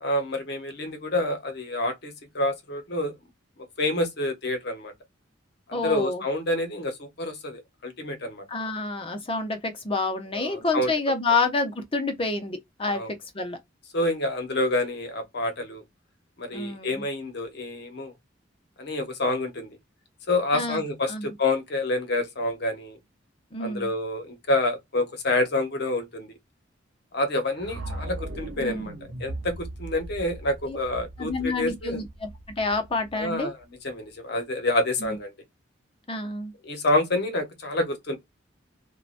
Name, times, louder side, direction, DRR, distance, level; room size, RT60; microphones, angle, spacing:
voice 1, 0.0-3.1 3.8-4.9 5.7-8.4 10.3-10.9 12.9-13.1 13.9-15.8 16.4-18.1 18.8-19.8 20.3-23.0 23.6-26.3 27.1-28.9 29.2-32.0 33.1-33.6 33.8-35.3 36.6-38.2, left 2 dB, 60° left, 0.8 m, -28 dB
voice 2, 5.7-6.2 8.5-13.6 16.5-17.1 20.5-20.8 21.1-21.3 23.5-23.9 28.6-28.9 30.7-30.8 31.2-32.3 32.6-33.5 35.0-35.2 36.1-36.5, left 3 dB, 30° left, 0.7 m, -28 dB
sound 1, 27.6-33.6, right 2 dB, 75° right, 0.6 m, -39 dB
2.8 x 2.2 x 2.5 m
head